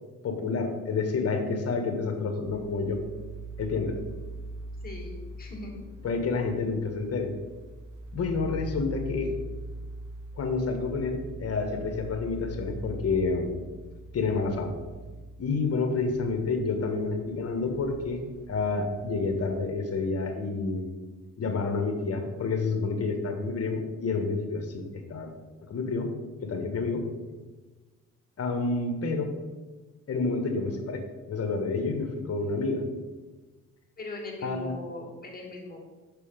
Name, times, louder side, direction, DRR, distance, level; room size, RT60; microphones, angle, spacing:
voice 1, 0.2-3.0 3.6-4.0 6.0-7.3 8.1-9.3 10.4-13.6 14.1-14.7 15.4-20.9 21.4-25.3 25.6-26.1 26.4-27.0 28.4-29.3 30.1-32.8 34.4-34.7, left 4 dB, 55° left, 5 dB, 1.5 m, -29 dB
sound 1, 2.4-19.6, right 2 dB, 85° right, 1.2 m, -42 dB
voice 2, 4.8-5.8 34.0-35.8, left 2 dB, 30° left, -1 dB, 2.6 m, -40 dB
6.8 x 6.1 x 5.1 m, 1.3 s
cardioid pair, 90°, 30 cm